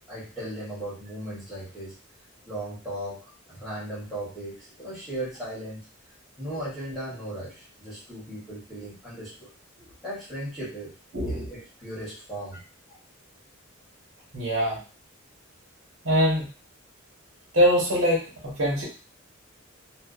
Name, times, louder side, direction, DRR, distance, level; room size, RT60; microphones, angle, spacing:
voice 1, 0.1-1.9 2.5-5.9 6.4-9.5 10.0-10.9 11.3-12.6, right 1 dB, ahead, -10 dB, 1.2 m, -37 dB
voice 2, 11.1-11.4 14.3-14.8 16.0-16.5 17.5-18.8, equal, 70° right, -4 dB, 1.2 m, -23 dB
2.6 x 2.1 x 2.5 m, 0.34 s
head